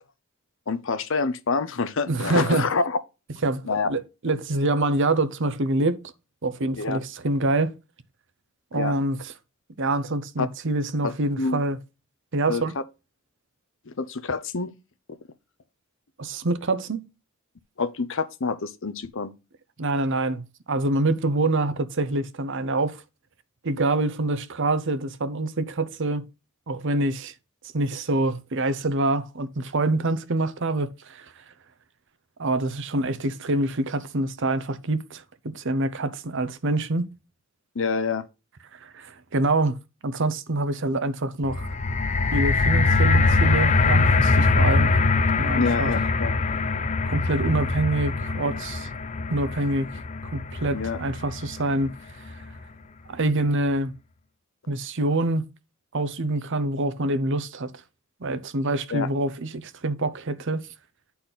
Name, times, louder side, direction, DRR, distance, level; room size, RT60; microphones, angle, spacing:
voice 1, 0.7-3.0 3.7-3.9 6.8-7.0 8.7-8.9 10.4-10.5 11.0-11.6 12.5-12.6 13.9-14.7 17.8-19.3 37.7-38.3 45.5-46.3 50.7-51.0 58.9-59.1, left 4 dB, 65° left, 0.8 m, -27 dB
voice 2, 2.1-2.7 3.4-6.0 6.4-7.7 8.7-9.3 9.8-11.8 12.3-12.7 16.2-17.1 19.8-23.0 23.6-26.2 26.7-27.3 27.7-31.3 32.4-37.1 38.8-39.8 40.0-41.7 42.3-44.9 45.4-45.9 47.1-48.9 49.3-49.9 50.2-51.9 53.1-53.9 54.7-55.5 55.9-57.7 58.2-60.7, right 2 dB, 60° right, 0.8 m, -26 dB
sound 1, 41.4-51.7 52.4-52.5, left 3 dB, 35° left, 0.5 m, -22 dB
10.0 x 4.3 x 3.8 m
head